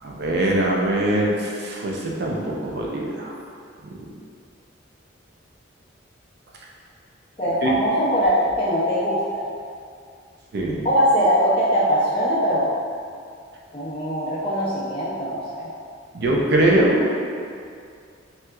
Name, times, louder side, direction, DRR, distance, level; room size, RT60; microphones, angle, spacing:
voice 1, 0.0-3.3 3.8-4.1 7.6-7.8 10.5-10.9 16.1-17.0, right 1 dB, 55° right, -2 dB, 0.4 m, -22 dB
voice 2, 7.4-9.5 10.8-12.7 13.7-15.7, equal, 30° left, -10 dB, 0.4 m, -21 dB
3.3 x 2.8 x 2.3 m, 2.3 s
head